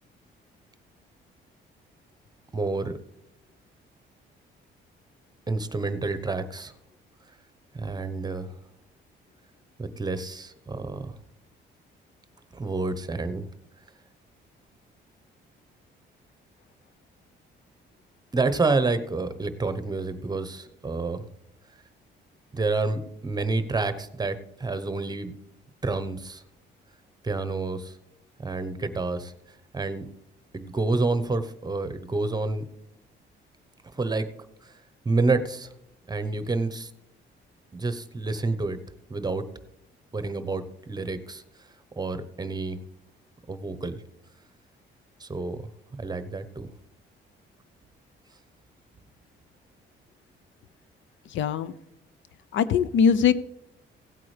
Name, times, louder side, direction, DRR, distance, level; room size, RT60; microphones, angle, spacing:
voice 1, 2.5-3.0 5.5-6.7 7.7-8.5 9.8-11.2 12.5-13.5 18.3-21.2 22.5-25.3 25.8-26.4 27.2-27.9 28.4-29.3 29.7-30.1 30.5-32.7 33.9-34.3 34.6-34.7 35.0-35.7 36.1-36.9 37.7-38.8 39.1-39.4 40.1-41.4 42.0-42.8 43.5-44.0 45.2-46.7, right 3 dB, 20° right, 11 dB, 1.0 m, -28 dB
voice 2, 51.3-51.7 52.5-53.3, left 7 dB, 75° left, 15 dB, 0.6 m, -21 dB
16.0 x 8.5 x 3.3 m, 0.80 s
cardioid pair, 90°, 20 cm